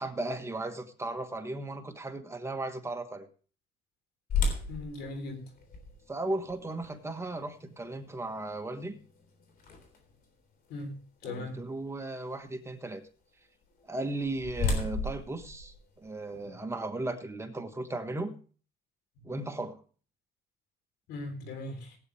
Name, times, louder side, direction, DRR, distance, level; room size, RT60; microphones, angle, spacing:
voice 1, 0.0-3.3 6.1-9.0 11.2-13.0 13.9-18.3 19.2-19.8, right 2 dB, 15° right, 6 dB, 1.4 m, -36 dB
sound 1, 4.3-10.2 10.8-10.9 11.5-11.7 13.8-16.5, left 3 dB, 60° left, 3.6 m, -35 dB
voice 2, 4.7-5.5 10.7-11.0 11.2-11.6 21.1-22.0, left 2 dB, 80° left, 7 dB, 3.6 m, -39 dB
17.5 x 9.1 x 3.3 m, 0.39 s
cardioid pair, 110°, 17 cm